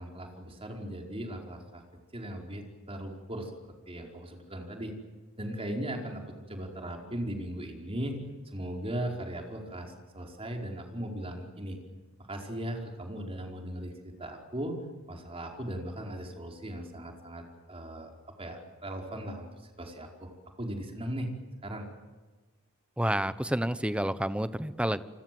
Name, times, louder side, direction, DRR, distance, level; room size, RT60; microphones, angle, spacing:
voice 1, 0.0-1.8 2.1-4.9 5.4-8.2 8.4-11.8 12.3-14.7 15.1-18.1 18.4-20.3 20.6-21.3 21.6-21.9, right 1 dB, 25° right, 2 dB, 4.9 m, -38 dB
voice 2, 23.0-25.0, right 1 dB, 5° right, 13 dB, 1.0 m, -29 dB
28.5 x 24.5 x 7.9 m, 1.3 s
head